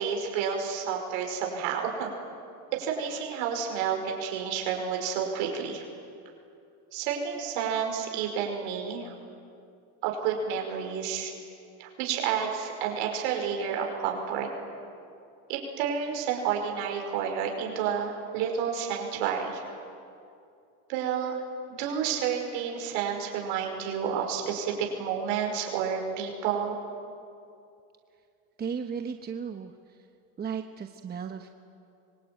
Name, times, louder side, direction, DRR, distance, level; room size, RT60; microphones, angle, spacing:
voice 1, 0.0-2.1 2.7-5.8 6.9-9.1 10.0-11.3 11.8-14.5 15.5-19.6 20.9-21.4 21.7-26.8, right 7 dB, 75° right, 2 dB, 5.5 m, -30 dB
voice 2, 28.6-30.1 30.4-31.5, right 6 dB, 20° right, 6 dB, 1.0 m, -35 dB
24.5 x 24.5 x 9.2 m, 2.6 s
supercardioid pair, 130°, 43 cm